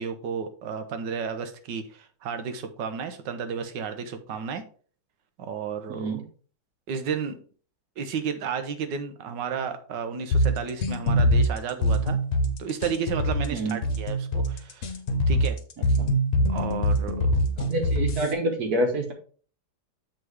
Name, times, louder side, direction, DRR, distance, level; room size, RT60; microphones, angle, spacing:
voice 1, 0.0-4.6 5.4-6.2 6.9-7.4 8.0-12.2 12.6-14.9 15.3-15.6 16.5-17.5, right 6 dB, 85° right, 8 dB, 1.6 m, -32 dB
voice 2, 5.9-6.2 13.5-13.8 16.0-16.1 17.6-19.1, right 1 dB, 60° right, 4 dB, 1.8 m, -27 dB
sound 1, 10.3-18.3, equal, 50° left, 1.2 m, -23 dB
7.5 x 3.9 x 4.7 m, 0.42 s
omnidirectional pair, 1.9 m